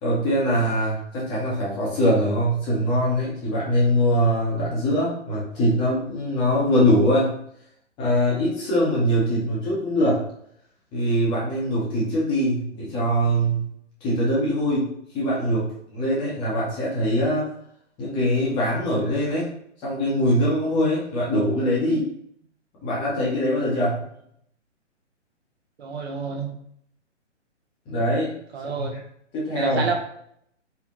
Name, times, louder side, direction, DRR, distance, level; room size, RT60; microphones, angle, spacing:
voice 1, 0.0-7.3 8.0-10.3 10.9-13.7 14.0-17.5 18.0-19.5 19.8-22.0 22.8-24.0 27.9-28.3 28.6-28.9 29.3-29.9, equal, 15° left, -6 dB, 0.7 m, -22 dB
voice 2, 25.8-26.5 28.5-29.0 29.5-29.9, right 5 dB, 60° right, 2 dB, 0.8 m, -28 dB
4.3 x 2.1 x 2.9 m, 0.70 s
hypercardioid pair, 135°, 37 cm